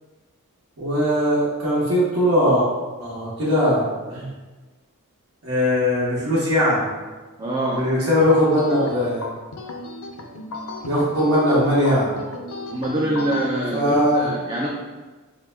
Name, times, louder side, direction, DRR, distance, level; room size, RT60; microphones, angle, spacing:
voice 1, 0.8-2.7 3.0-3.8 4.1-4.3 5.4-6.8 7.7-9.2 10.8-12.1 13.7-14.3, equal, 65° right, -10 dB, 1.0 m, -20 dB
voice 2, 7.4-7.9 12.7-14.7, right 1 dB, 20° right, -2 dB, 0.3 m, -24 dB
sound 1, 8.2-13.5, left 2 dB, 75° left, 0.4 m, -35 dB
4.7 x 2.0 x 3.3 m, 1.3 s
head